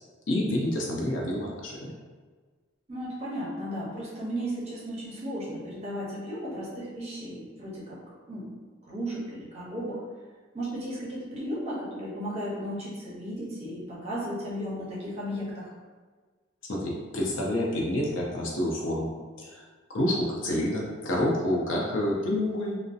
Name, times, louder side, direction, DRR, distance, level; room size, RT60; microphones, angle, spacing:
voice 1, 0.3-1.9 16.7-19.1 19.4-19.6 19.9-22.7, left 1 dB, 90° left, -2 dB, 0.6 m, -28 dB
voice 2, 2.9-8.0 8.3-8.5 8.9-10.0 10.5-15.7, equal, 35° right, -5 dB, 0.6 m, -35 dB
2.6 x 2.1 x 2.3 m, 1.4 s
head